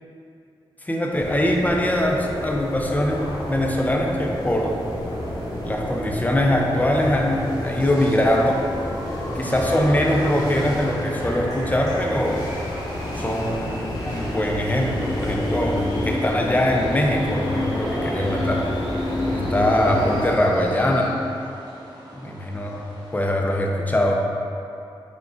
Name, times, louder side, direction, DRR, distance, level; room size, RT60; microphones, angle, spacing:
voice 1, 0.8-4.8 5.6-8.6 9.3-12.5 13.2-15.8 16.0-18.6 19.3-21.1 22.2-22.8 23.1-24.2, left 1 dB, 15° left, 0 dB, 0.5 m, -22 dB
sound 1, 1.1-20.3, left 1 dB, 40° left, 1.3 m, -29 dB
sound 2, 3.1-21.1, left 1 dB, 70° left, 0.7 m, -36 dB
sound 3, 15.7-23.2, right 1 dB, 45° right, 1.5 m, -42 dB
4.6 x 3.6 x 2.5 m, 2.6 s
cardioid pair, 65°, 10 cm